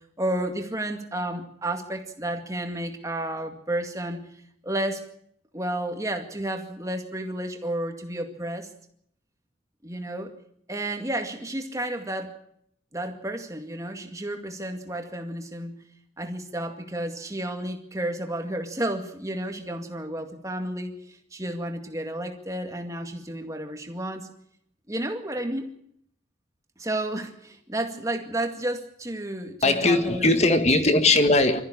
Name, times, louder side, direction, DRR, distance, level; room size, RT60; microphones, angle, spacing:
voice 1, 0.2-4.2 4.6-5.0 5.5-8.7 9.8-10.3 10.7-12.3 12.9-15.7 16.2-24.3 24.9-25.7 26.8-30.6, right 1 dB, 15° right, 4 dB, 2.2 m, -31 dB
voice 2, 29.6-31.6, left 2 dB, 35° left, 8 dB, 1.8 m, -19 dB
23.5 x 14.0 x 8.6 m, 0.71 s
head